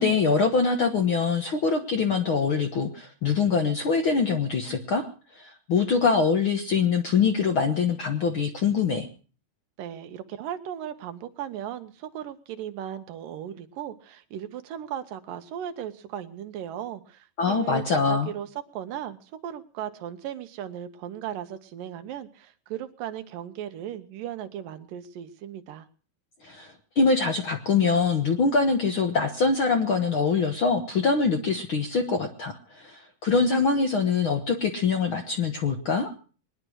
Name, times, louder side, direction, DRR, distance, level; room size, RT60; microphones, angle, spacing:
voice 1, 0.0-5.0 5.3-9.1 17.4-18.3 26.4-36.1, left 5 dB, 60° left, 5 dB, 1.4 m, -24 dB
voice 2, 9.8-25.9, right 10 dB, 80° right, 9 dB, 2.7 m, -37 dB
21.5 x 10.5 x 6.3 m, 0.40 s
omnidirectional pair, 3.9 m